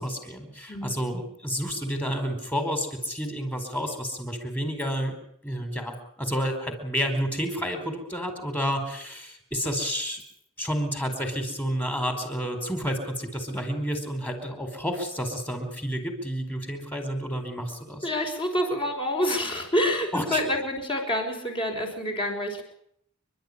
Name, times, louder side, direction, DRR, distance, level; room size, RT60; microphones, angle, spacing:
voice 1, 0.0-5.1 5.4-10.2 10.6-18.1 20.1-20.4, equal, 10° left, 6 dB, 4.6 m, -30 dB
voice 2, 18.0-22.6, equal, 25° left, 1 dB, 5.7 m, -27 dB
29.0 x 12.0 x 9.9 m, 0.72 s
head